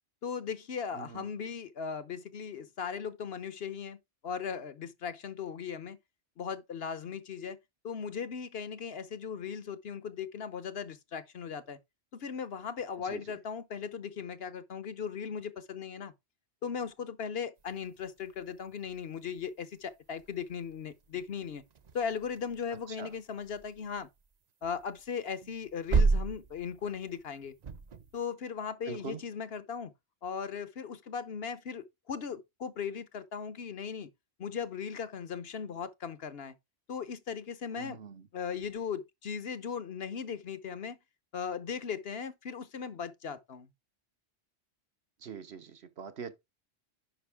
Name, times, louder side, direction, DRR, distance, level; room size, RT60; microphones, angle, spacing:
voice 1, 0.2-4.0 4.2-6.0 6.4-7.6 7.8-11.8 12.1-16.1 16.6-21.6 21.9-24.1 24.6-27.5 28.1-29.9 30.2-34.1 34.4-36.5 36.9-38.0 38.3-41.0 41.3-43.7, left 6 dB, 65° left, 1.1 m, -38 dB
voice 2, 0.9-1.2 13.0-13.4 23.0-23.1 28.9-29.2 37.8-38.2 45.2-46.3, right 6 dB, 70° right, 1.3 m, -43 dB
sound 1, 17.6-28.2, right 4 dB, 45° right, 0.7 m, -35 dB
10.5 x 5.3 x 3.5 m
omnidirectional pair, 1.1 m